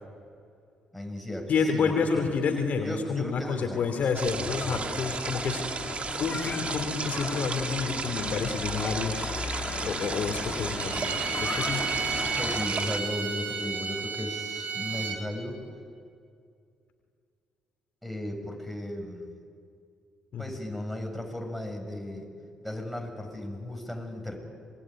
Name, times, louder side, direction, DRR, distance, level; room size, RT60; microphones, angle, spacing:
voice 1, 0.9-2.1 2.8-3.9 12.4-15.6 18.0-19.3 20.4-22.3 22.6-24.4, left 1 dB, ahead, 2 dB, 7.0 m, -35 dB
voice 2, 1.5-9.3 9.8-11.9 20.3-20.4, left 5 dB, 55° left, 5 dB, 3.0 m, -29 dB
sound 1, 4.1-13.0, right 4 dB, 40° right, 2.2 m, -34 dB
Church bell / Traffic noise roadway noise, 4.3-12.7, left 4 dB, 35° left, 2.7 m, -37 dB
Bowed string instrument, 10.8-15.2, right 6 dB, 60° right, 3.8 m, -32 dB
26.5 x 22.0 x 9.5 m, 2.3 s
hypercardioid pair, 45°, 3 cm